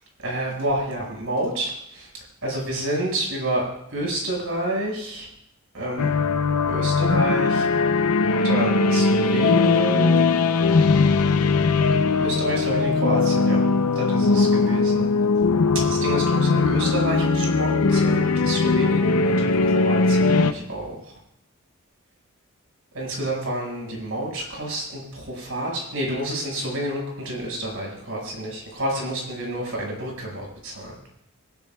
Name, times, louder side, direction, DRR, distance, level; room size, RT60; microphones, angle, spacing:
voice 1, 0.2-2.1 2.4-5.3 5.7-6.1 6.6-7.7 8.4-10.2 12.2-13.6 13.9-15.1 15.9-21.1 22.9-31.0, right 1 dB, 65° right, -1 dB, 5.8 m, -29 dB
sound 1, 6.0-20.5, left 4 dB, 90° left, 0.7 m, -20 dB
25.5 x 15.5 x 2.4 m, 0.77 s
head